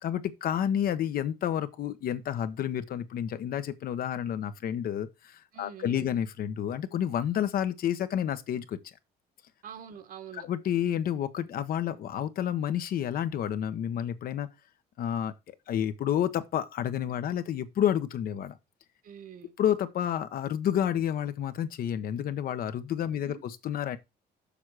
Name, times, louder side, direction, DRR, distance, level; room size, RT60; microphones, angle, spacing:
voice 1, 0.0-8.8 10.3-14.5 15.0-18.6 19.6-24.0, left 10 dB, 60° left, 1.0 m, -30 dB
voice 2, 5.5-6.1 9.6-10.5 19.0-19.5 23.3-23.4, right 8 dB, 55° right, 1.5 m, -45 dB
7.1 x 6.0 x 4.9 m
cardioid pair, 110°, 17 cm